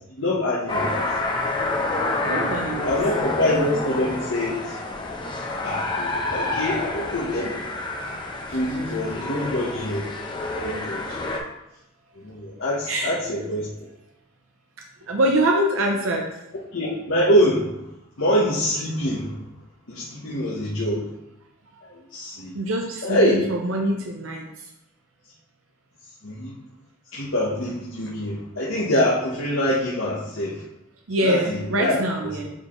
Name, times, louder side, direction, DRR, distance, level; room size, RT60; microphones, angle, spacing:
voice 1, 0.2-1.0 2.7-4.8 5.6-7.6 8.5-10.1 10.6-11.3 12.2-13.7 16.7-17.7 18.2-19.4 19.9-21.1 21.8-22.5 23.0-23.5 26.2-26.6 27.1-30.6 31.2-32.0, left 1 dB, 75° left, -5 dB, 1.1 m, -24 dB
sound 1, 0.7-11.4, left 2 dB, 25° left, 0.8 m, -28 dB
voice 2, 2.3-3.0 8.5-8.6 12.9-13.5 15.1-16.3 22.5-24.7 31.1-32.5, right 1 dB, 80° right, 1 dB, 0.7 m, -24 dB
8.0 x 4.2 x 3.1 m, 0.87 s
head